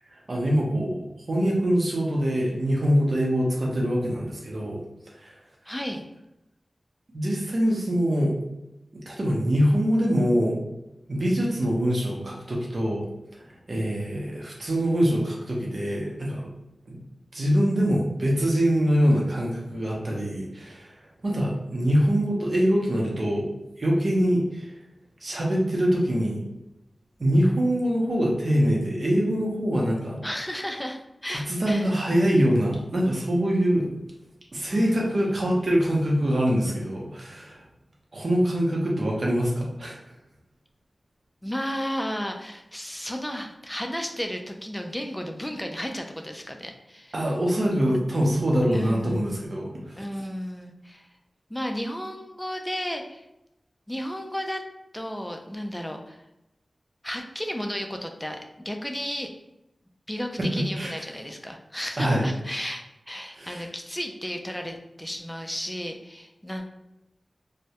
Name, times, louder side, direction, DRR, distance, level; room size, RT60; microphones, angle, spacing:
voice 1, 0.3-4.8 5.2-5.4 7.1-8.3 9.1-10.6 11.1-13.1 13.3-16.5 16.9-17.0 17.3-20.9 21.2-23.5 23.8-24.8 25.2-26.4 27.2-30.2 31.3-33.9 34.5-37.6 38.1-40.0 47.1-50.0 60.4-60.9 62.0-62.2 63.3-63.7, equal, 60° right, -3 dB, 0.6 m, -24 dB
voice 2, 5.7-6.1 30.2-31.9 34.7-35.5 41.4-47.1 48.7-49.3 50.0-51.1 51.5-53.3 53.9-54.6 54.9-56.2 57.0-59.3 60.1-66.6, equal, 10° left, 3 dB, 0.3 m, -33 dB
2.2 x 2.0 x 2.7 m, 0.89 s
wide cardioid pair, 85°, 0 cm